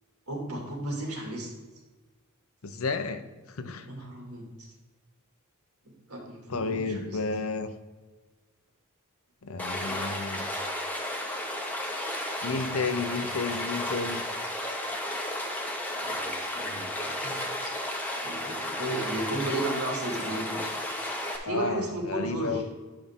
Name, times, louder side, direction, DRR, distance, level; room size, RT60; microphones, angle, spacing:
voice 1, 0.3-1.5 3.9-4.5 6.1-7.2 9.8-10.1 16.0-17.7 18.2-20.6 21.4-22.6, right 2 dB, 80° right, -1 dB, 2.4 m, -34 dB
voice 2, 2.6-3.2 3.6-3.9 6.5-7.7 9.4-10.5 12.4-14.3 21.4-22.6, left 4 dB, 70° left, 10 dB, 0.7 m, -32 dB
Stream, 9.6-21.4, left 1 dB, 10° left, 1.0 m, -33 dB
10.0 x 5.6 x 3.6 m, 1.3 s
head